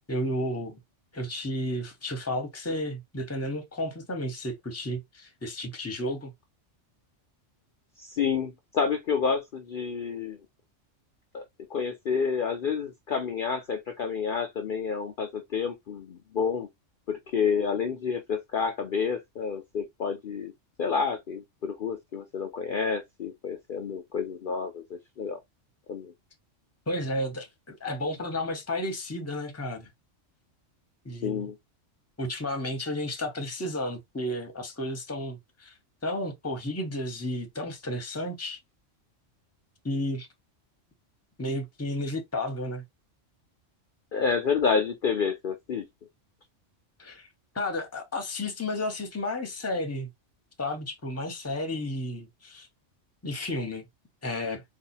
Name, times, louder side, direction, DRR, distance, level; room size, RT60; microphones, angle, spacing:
voice 1, 0.1-0.8 1.1-6.3 26.9-29.9 31.0-31.4 32.2-35.7 36.0-38.6 39.8-40.3 41.4-42.8 47.0-47.3 47.5-50.1 50.6-52.7 53.2-53.9 54.2-54.6, left 1 dB, 15° left, 0.8 m, -32 dB
voice 2, 8.0-10.4 11.3-11.4 11.7-16.7 17.1-20.5 20.8-25.4 25.9-26.1 31.2-31.5 44.1-45.9, left 6 dB, 55° left, 0.7 m, -29 dB
4.2 x 2.5 x 2.7 m
omnidirectional pair, 1.3 m